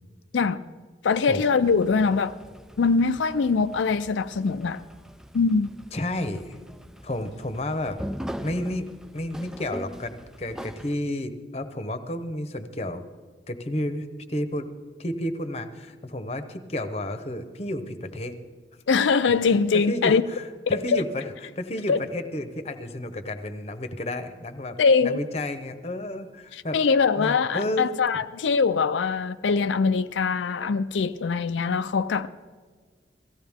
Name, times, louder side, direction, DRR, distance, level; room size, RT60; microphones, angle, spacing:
voice 1, 1.0-2.3 2.8-4.8 5.3-5.7 18.9-20.2 20.7-21.0 21.9-22.0 24.8-25.2 26.5-32.3, left 5 dB, 85° left, 0.4 m, -22 dB
sound 1, 1.6-11.0, equal, 5° right, 0.3 m, -41 dB
voice 2, 5.9-6.6 7.0-8.0 8.4-8.9 9.1-13.0 13.5-14.7 15.0-18.4 19.7-21.3 21.6-26.8 27.2-27.9, left 1 dB, 35° left, 0.9 m, -31 dB
17.5 x 15.5 x 3.6 m
head